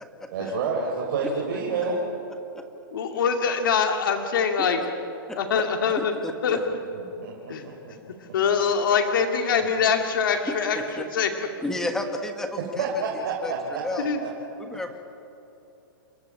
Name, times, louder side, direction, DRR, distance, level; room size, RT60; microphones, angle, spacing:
voice 1, 0.3-2.0 6.9-7.9 12.7-14.3, right 4 dB, 45° right, -2 dB, 4.2 m, -29 dB
voice 2, 2.9-4.8 5.4-6.1 6.4-6.6 7.5-7.6 8.3-10.8 11.1-11.3 14.0-14.2, left 6 dB, 65° left, 3 dB, 2.5 m, -23 dB
voice 3, 5.3-5.6 6.0-6.6 10.4-11.0 11.6-12.8 13.4-14.1 14.6-15.0, left 1 dB, 5° left, 5 dB, 1.4 m, -32 dB
30.0 x 13.0 x 8.6 m, 2.8 s
hypercardioid pair, 165°, 12 cm